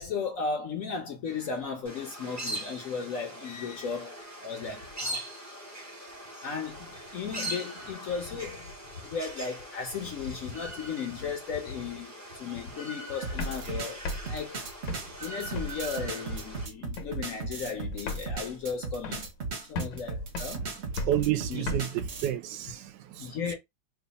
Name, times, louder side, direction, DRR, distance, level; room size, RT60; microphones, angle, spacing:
voice 1, 0.0-5.2 6.4-8.7 9.0-14.6 15.2-19.3 19.7-20.6 21.5-21.6 23.2-23.6, left 5 dB, 65° left, 0.9 m, -35 dB
sound 1, 1.8-16.7, right 1 dB, 15° right, 0.5 m, -41 dB
sound 2, 13.2-22.3, right 3 dB, 50° right, 0.9 m, -36 dB
sound 3, 13.4-15.9 16.3-16.7 17.0-17.3 17.6-17.7 17.9-19.5 19.7-21.8, left 2 dB, 80° left, 1.4 m, -37 dB
voice 2, 21.0-23.6, right 12 dB, 80° right, 1.2 m, -30 dB
3.1 x 2.3 x 3.9 m
omnidirectional pair, 1.9 m